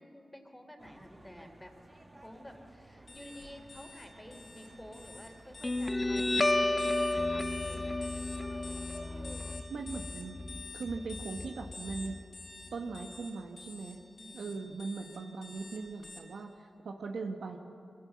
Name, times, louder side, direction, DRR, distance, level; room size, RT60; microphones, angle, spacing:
voice 1, 0.0-1.7 2.1-8.1 14.2-14.6 16.7-17.0, equal, 10° left, 4 dB, 3.4 m, -51 dB
sound 1, 0.8-9.6, right 2 dB, 25° right, 1.4 m, -55 dB
sound 2, 3.1-16.2, left 3 dB, 60° left, 4.4 m, -48 dB
Guitar, 5.6-12.6, left 2 dB, 25° left, 0.7 m, -32 dB
voice 2, 9.7-10.4 10.7-12.2 12.7-14.0 14.3-17.6, right 4 dB, 75° right, 3 dB, 1.2 m, -39 dB
23.5 x 15.5 x 8.5 m, 2.6 s
cardioid pair, 50°, 0 cm